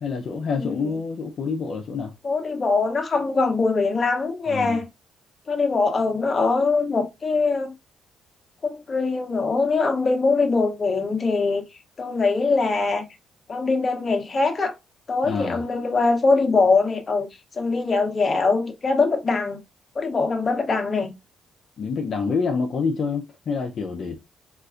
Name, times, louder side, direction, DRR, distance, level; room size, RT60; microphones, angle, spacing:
voice 1, 0.0-2.1 4.5-4.8 15.2-15.6 21.8-24.2, left 5 dB, 55° left, 0.5 m, -27 dB
voice 2, 0.6-1.0 2.2-4.9 5.5-7.7 8.6-11.6 12.0-13.0 13.5-14.7 15.1-17.3 17.6-19.6 19.9-21.1, left 3 dB, 35° left, 0.8 m, -22 dB
3.9 x 2.4 x 2.4 m
cardioid pair, 90°, 0 cm